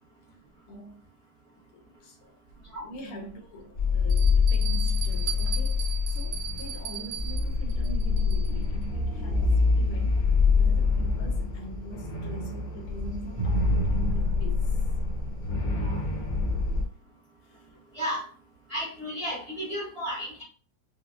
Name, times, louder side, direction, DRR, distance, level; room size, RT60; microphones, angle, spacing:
voice 1, 0.7-1.0 1.7-2.4 2.8-14.9 17.4-17.7, right 1 dB, 80° left, 1.6 m, -43 dB
Bell, 2.5-2.6 3.3-3.4 4.1-8.7, right 10 dB, 70° right, 1.4 m, -38 dB
sound 1, 3.7-16.8, left 4 dB, 55° left, 0.9 m, -25 dB
voice 2, 18.7-20.4, equal, 40° right, 0.8 m, -33 dB
5.4 x 2.1 x 2.4 m
omnidirectional pair, 2.4 m